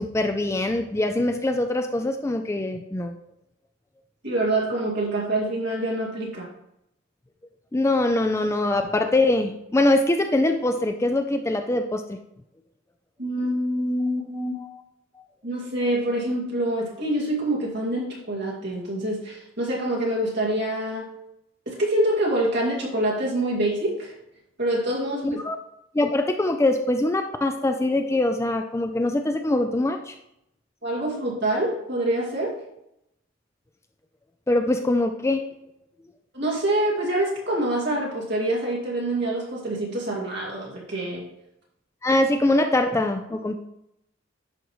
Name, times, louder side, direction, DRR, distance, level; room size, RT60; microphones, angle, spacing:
voice 1, 0.0-3.1 7.7-12.2 14.6-14.8 25.2-25.6 25.9-30.1 34.5-35.4 42.0-43.6, left 2 dB, 15° left, 6 dB, 0.3 m, -23 dB
voice 2, 4.2-6.5 13.2-14.6 15.4-21.1 21.7-24.1 24.6-25.4 30.8-32.6 36.3-41.3, right 1 dB, 55° right, -3 dB, 2.3 m, -26 dB
10.5 x 5.2 x 3.1 m, 0.81 s
head